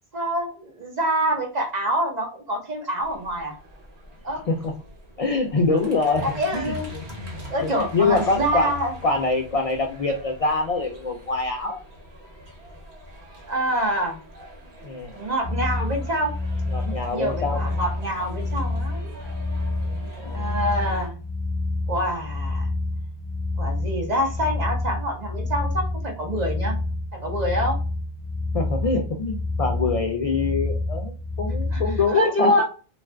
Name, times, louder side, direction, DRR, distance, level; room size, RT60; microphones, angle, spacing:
voice 1, 0.1-3.5 4.2-4.4 6.2-7.0 7.5-8.9 13.5-14.2 15.2-16.3 17.1-19.1 20.3-21.2 21.9-22.6 23.6-26.8 27.2-27.8 31.7-31.8 32.1-32.6, equal, 45° right, 2 dB, 0.9 m, -26 dB
sound 1, 3.0-21.1, left 1 dB, 75° right, 1.2 m, -42 dB
voice 2, 4.5-4.8 5.2-6.3 6.5-7.0 7.6-11.8 14.8-15.2 16.7-17.6 19.8-20.5 28.5-32.6, left 3 dB, 60° left, 3 dB, 0.3 m, -25 dB
sound 2, 15.4-32.0, left 2 dB, 5° left, 1.1 m, -28 dB
2.5 x 2.3 x 3.2 m, 0.36 s
omnidirectional pair, 1.1 m